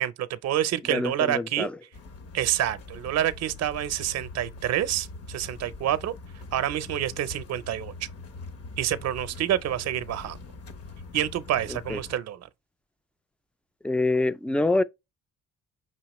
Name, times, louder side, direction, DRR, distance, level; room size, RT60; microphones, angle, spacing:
voice 1, 0.0-1.7 2.3-6.1 6.5-8.1 8.8-10.4 11.1-12.5, right 11 dB, 60° right, 0.6 m, -28 dB
voice 2, 0.9-1.7 11.7-12.0 13.8-14.8, left 2 dB, 5° left, 0.3 m, -25 dB
sound 1, 1.9-12.2, left 3 dB, 50° left, 0.9 m, -43 dB
5.6 x 2.8 x 3.0 m
cardioid pair, 90°, 30 cm